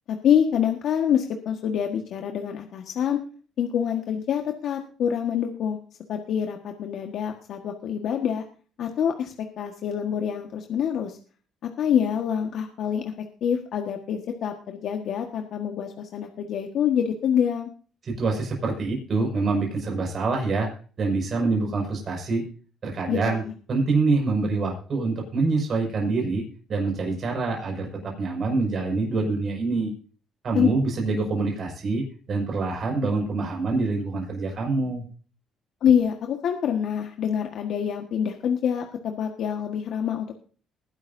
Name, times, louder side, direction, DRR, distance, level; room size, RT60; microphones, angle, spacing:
voice 1, 0.1-3.2 3.6-5.8 6.1-8.4 8.8-11.2 11.6-13.1 13.4-17.7 23.1-23.5 30.5-30.7 35.8-40.3, left 8 dB, 65° left, 3 dB, 1.5 m, -26 dB
voice 2, 18.0-20.7 21.0-22.4 22.8-23.4 23.7-26.4 26.7-29.9 30.4-35.0, right 3 dB, 45° right, 0 dB, 5.6 m, -25 dB
20.5 x 11.0 x 2.7 m, 0.40 s
cardioid pair, 105°, 0 cm